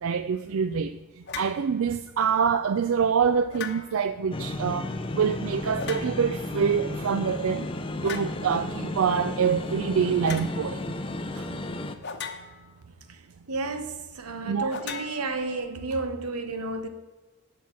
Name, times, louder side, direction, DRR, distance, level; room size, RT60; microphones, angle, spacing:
voice 1, 0.0-1.0 1.3-4.9 5.1-7.7 8.0-10.8 11.3-11.5 14.4-14.7, right 6 dB, 65° right, 0.4 m, -25 dB
sound 1, 1.3-1.6 3.5-4.1 5.7-6.4 8.0-8.4 10.2-10.5 12.0-12.8 14.7-15.8, left 6 dB, 50° left, 0.9 m, -38 dB
sound 2, 4.3-12.0, left 2 dB, 25° left, 0.5 m, -33 dB
voice 2, 13.5-16.9, right 3 dB, 90° right, 1.1 m, -32 dB
10.5 x 5.7 x 7.5 m
head